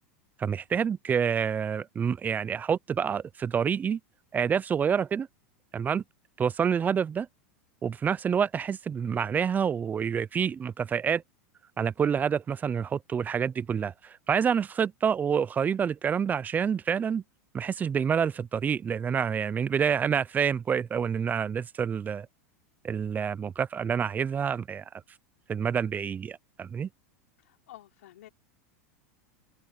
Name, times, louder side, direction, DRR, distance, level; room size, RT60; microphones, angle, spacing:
voice 1, 0.4-4.0 4.3-5.3 5.7-6.0 6.4-7.3 7.8-11.2 11.8-17.2 17.5-22.3 22.8-24.8 25.5-26.9, right 7 dB, 20° right, 0.6 m, -27 dB
voice 2, 27.4-28.3, left 14 dB, 80° left, 3.9 m, -51 dB
hypercardioid pair, 110°, 8 cm